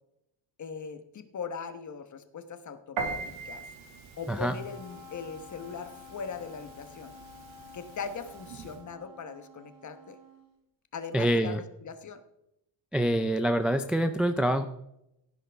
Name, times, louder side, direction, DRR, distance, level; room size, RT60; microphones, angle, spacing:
voice 1, 0.6-3.2 3.4-3.6 4.2-7.1 7.7-10.2 10.9-12.2, left 6 dB, 35° left, 9 dB, 1.2 m, -40 dB
Piano, 3.0-8.8, right 4 dB, 70° right, 2.3 m, -41 dB
Wind instrument woodwind instrument, 4.4-10.5, left 3 dB, 40° right, 5.6 m, -51 dB
voice 2, 11.1-11.6 12.9-14.7, right 1 dB, ahead, 7 dB, 0.3 m, -26 dB
16.5 x 9.8 x 3.5 m, 0.83 s
cardioid pair, 145°, 48 cm